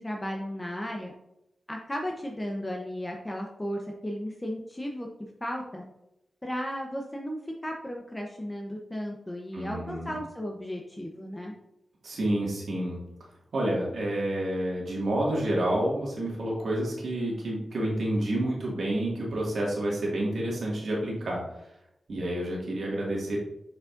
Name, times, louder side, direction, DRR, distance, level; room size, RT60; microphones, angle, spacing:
voice 1, 0.0-1.1 1.7-5.1 5.4-5.8 6.4-11.5, equal, 20° left, 1 dB, 0.8 m, -35 dB
voice 2, 9.5-10.1 12.0-13.0 13.5-21.4 22.1-23.4, right 1 dB, 85° right, -4 dB, 2.0 m, -29 dB
7.5 x 5.0 x 2.6 m, 0.83 s
wide cardioid pair, 75°, 0 cm